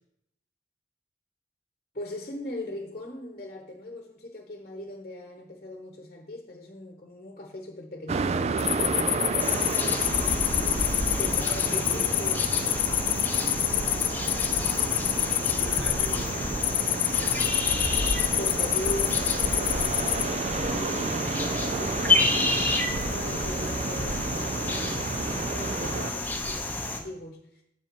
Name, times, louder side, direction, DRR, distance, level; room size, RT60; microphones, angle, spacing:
voice 1, 1.9-10.5 11.2-12.4 13.7-13.9 15.5-16.0 18.4-22.5 23.0-27.6, left 1 dB, 40° left, 3 dB, 1.1 m, -40 dB
sound 1, 8.1-26.1, right 4 dB, 35° right, 0.3 m, -32 dB
sound 2, 8.6-20.2, left 15 dB, 60° left, 0.5 m, -28 dB
sound 3, 9.4-27.0, left 2 dB, 10° left, 0.8 m, -30 dB
voice 2, 10.9-12.2 14.9-16.7, equal, 70° right, -3 dB, 3.1 m, -42 dB
7.7 x 7.2 x 4.6 m, 0.77 s
head